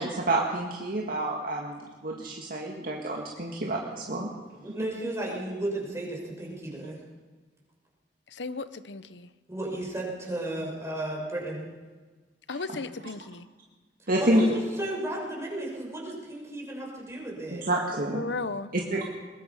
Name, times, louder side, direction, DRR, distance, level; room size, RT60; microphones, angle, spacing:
voice 1, 0.0-4.3 14.1-14.5 17.5-18.2 18.9-19.0, right 1 dB, 55° right, -1 dB, 2.1 m, -28 dB
voice 2, 4.6-7.0 9.5-11.7 14.0-17.7, right 1 dB, 15° right, -3 dB, 6.5 m, -34 dB
voice 3, 8.3-9.3 12.5-13.5 18.1-18.7, left 3 dB, 75° left, 14 dB, 0.9 m, -35 dB
22.0 x 20.5 x 5.7 m, 1.3 s
head